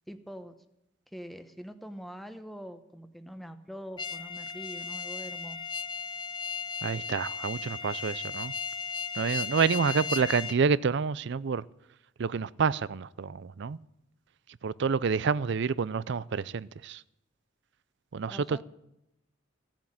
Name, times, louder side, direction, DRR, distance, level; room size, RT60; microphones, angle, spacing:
voice 1, 0.1-0.5 1.1-5.6 18.3-18.6, equal, ahead, 0.9 m, -44 dB
sound 1, 4.0-10.6, left 6 dB, 25° left, 0.4 m, -36 dB
voice 2, 6.8-8.5 9.1-11.6 12.2-13.8 14.6-17.0 18.1-18.6, right 5 dB, 60° right, 0.4 m, -28 dB
16.0 x 7.5 x 8.9 m
head